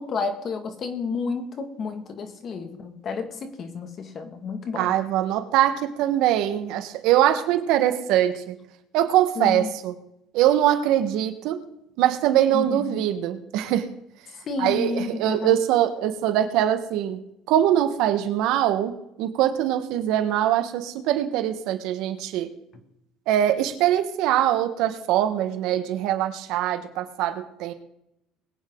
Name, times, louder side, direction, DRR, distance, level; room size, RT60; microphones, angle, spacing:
voice 1, 0.0-4.9 9.4-9.7 12.5-13.0 14.4-15.6, left 4 dB, 40° left, 7 dB, 2.0 m, -31 dB
voice 2, 4.8-8.6 8.9-9.9 10.3-11.6 12.0-13.9 14.6-17.2 17.5-22.5 23.3-27.7, right 12 dB, 70° right, 9 dB, 1.4 m, -22 dB
21.5 x 9.0 x 3.9 m, 0.80 s
cardioid pair, 130°, 0 cm